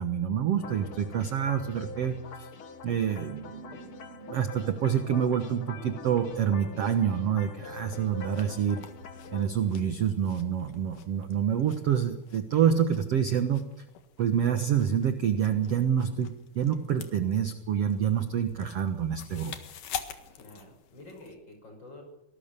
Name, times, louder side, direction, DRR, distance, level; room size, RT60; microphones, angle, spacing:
voice 1, 0.0-2.5 2.8-8.8 9.3-13.6 14.2-19.5, right 8 dB, 55° right, 7 dB, 1.8 m, -27 dB
sound 1, 0.6-9.5, left 4 dB, 50° left, 1.9 m, -44 dB
sound 2, 8.1-21.3, left 9 dB, 65° left, 3.0 m, -47 dB
voice 2, 20.3-22.0, left 2 dB, 30° left, 3 dB, 6.4 m, -48 dB
25.5 x 19.0 x 6.8 m, 0.89 s
omnidirectional pair, 4.3 m